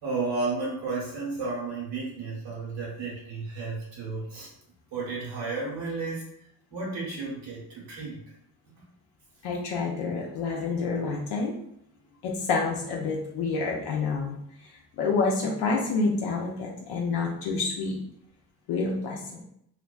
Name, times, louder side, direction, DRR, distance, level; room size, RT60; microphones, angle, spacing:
voice 1, 0.0-4.5 4.9-6.3 6.7-8.2, right 3 dB, 75° right, -5 dB, 1.1 m, -32 dB
voice 2, 9.4-11.5 12.2-14.4 15.0-18.0 18.7-19.2, left 4 dB, 65° left, -1 dB, 0.6 m, -28 dB
2.4 x 2.2 x 2.3 m, 0.73 s
hypercardioid pair, 40°, 44 cm